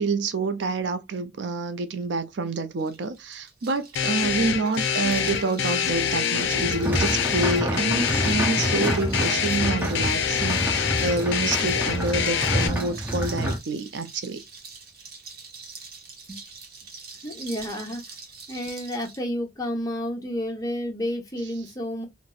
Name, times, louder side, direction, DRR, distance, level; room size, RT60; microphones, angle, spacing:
voice 1, 0.0-14.4, right 3 dB, 70° right, 0.4 m, -27 dB
sound 1, 2.8-19.2, right 4 dB, 50° right, 0.9 m, -44 dB
sound 2, 4.0-12.7, left 7 dB, 70° left, 0.5 m, -26 dB
sound 3, 6.5-13.6, equal, 10° right, 0.6 m, -28 dB
voice 2, 17.2-18.0 18.5-22.0, equal, 20° left, 0.9 m, -30 dB
4.1 x 2.1 x 2.3 m
head